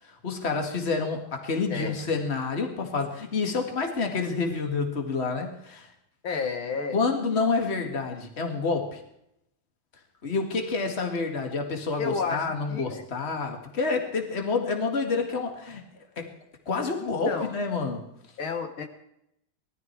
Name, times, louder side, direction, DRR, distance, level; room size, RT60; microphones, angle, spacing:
voice 1, 0.2-5.9 6.9-9.0 10.2-15.8 16.2-16.3 16.7-18.1, left 4 dB, 30° left, 3 dB, 2.1 m, -28 dB
voice 2, 1.7-2.1 6.2-7.0 12.0-13.0 17.0-17.5 18.4-18.9, left 5 dB, 75° left, 6 dB, 2.2 m, -31 dB
19.5 x 13.0 x 4.6 m, 0.79 s
omnidirectional pair, 2.3 m